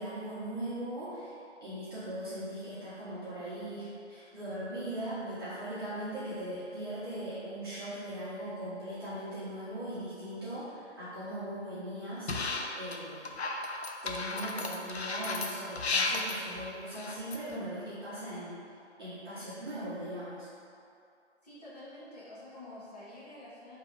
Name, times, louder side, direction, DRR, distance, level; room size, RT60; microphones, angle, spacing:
voice 1, 0.0-1.3 1.6-12.3 12.7-13.3 14.0-18.6 19.0-20.5, right 1 dB, 20° right, -15 dB, 1.3 m, -39 dB
sound 1, 12.3-13.0 13.3-17.5, left 3 dB, 65° left, 0.5 m, -33 dB
voice 2, 21.4-23.7, left 1 dB, 35° left, -11 dB, 1.2 m, -48 dB
3.6 x 3.0 x 4.7 m, 2.5 s
figure-of-eight pair, 155°, 36 cm